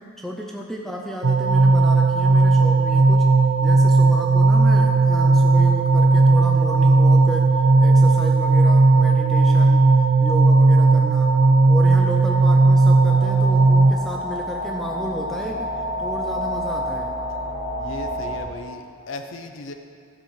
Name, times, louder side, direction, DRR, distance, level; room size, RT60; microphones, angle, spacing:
voice 1, 0.0-7.5 7.8-15.7 16.0-17.1, equal, ahead, -1 dB, 0.5 m, -33 dB
sound 1, 1.2-13.9, right 3 dB, 85° right, 0.5 m, -16 dB
sound 2, 11.6-18.4, equal, 45° left, 2.3 m, -30 dB
voice 2, 17.8-19.7, left 2 dB, 60° left, 5 dB, 0.6 m, -36 dB
13.0 x 5.2 x 5.7 m, 2.3 s
head